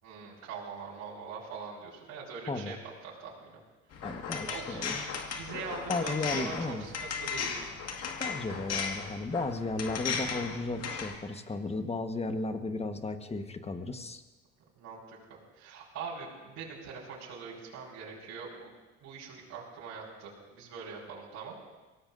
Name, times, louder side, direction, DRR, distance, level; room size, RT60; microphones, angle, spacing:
voice 1, 0.0-2.8 3.0-3.6 4.5-7.6 14.8-18.7 19.0-21.5, right 5 dB, 65° right, -6 dB, 4.8 m, -43 dB
sound 1, 3.9-11.1, left 6 dB, 55° left, 2.0 m, -36 dB
voice 2, 4.0-5.1 5.9-6.9 8.2-14.2, left 3 dB, 20° left, 8 dB, 1.4 m, -34 dB
23.5 x 17.5 x 2.7 m, 1.2 s
supercardioid pair, 70°, 30 cm